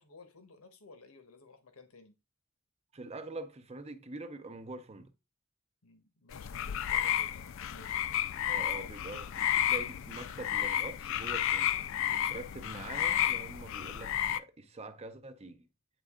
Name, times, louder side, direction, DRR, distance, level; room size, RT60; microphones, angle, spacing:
voice 1, 0.0-2.1 5.8-8.0 8.7-8.9, left 3 dB, 85° left, 1.2 m, -55 dB
voice 2, 2.9-5.1 8.5-11.8 12.0-15.7, right 2 dB, 30° right, 0.7 m, -44 dB
sound 1, 6.3-14.4, left 10 dB, 65° left, 0.4 m, -32 dB
9.1 x 3.5 x 3.7 m
head